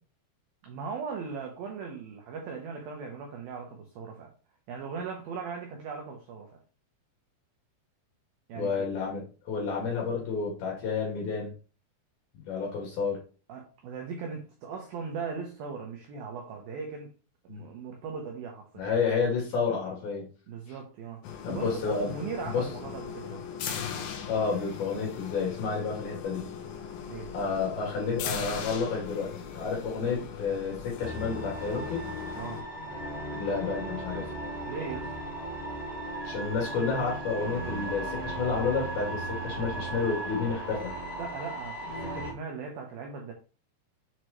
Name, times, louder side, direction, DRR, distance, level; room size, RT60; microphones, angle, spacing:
voice 1, 0.6-4.3 4.7-6.5 8.5-8.8 13.5-17.1 17.4-18.9 20.5-21.2 21.5-23.4 27.1-27.3 32.4-32.6 34.7-35.1 41.2-43.3, right 5 dB, 80° right, 2 dB, 2.1 m, -38 dB
voice 2, 8.6-11.5 12.5-13.2 17.5-17.6 18.8-20.2 21.4-22.1 22.5-22.7 24.3-26.5 27.3-32.0 33.4-34.3 36.3-40.9, left 5 dB, 60° left, -2 dB, 3.7 m, -30 dB
sound 1, 21.2-32.6, left 7 dB, 80° left, 2.1 m, -39 dB
sound 2, 31.0-42.3, right 1 dB, 25° left, 1.2 m, -36 dB
7.5 x 4.6 x 3.1 m, 0.36 s
omnidirectional pair, 5.4 m